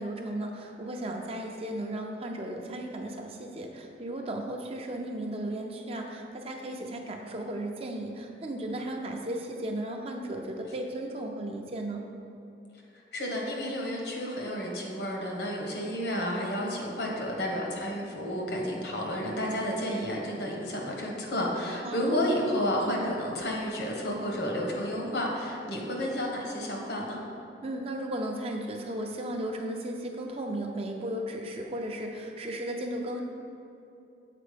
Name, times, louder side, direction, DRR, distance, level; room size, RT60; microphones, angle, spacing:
voice 1, 0.0-12.1 21.8-22.2 27.6-33.2, right 1 dB, 35° right, 2 dB, 0.6 m, -35 dB
voice 2, 12.9-27.2, equal, 70° left, -1 dB, 1.4 m, -31 dB
7.5 x 4.4 x 5.1 m, 2.7 s
head